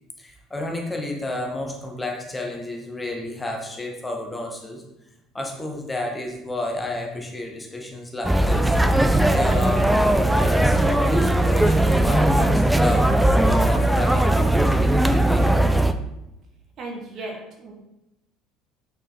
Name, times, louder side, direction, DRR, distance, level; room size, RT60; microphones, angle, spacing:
voice 1, 0.2-4.8 5.3-8.8 9.3-15.5, left 1 dB, 15° left, 1 dB, 1.5 m, -31 dB
sound 1, 8.2-15.9, right 1 dB, 5° right, 0.5 m, -18 dB
voice 2, 16.8-17.7, right 2 dB, 45° right, 0 dB, 1.7 m, -35 dB
6.5 x 6.3 x 4.0 m, 0.89 s
figure-of-eight pair, 60°, 0 cm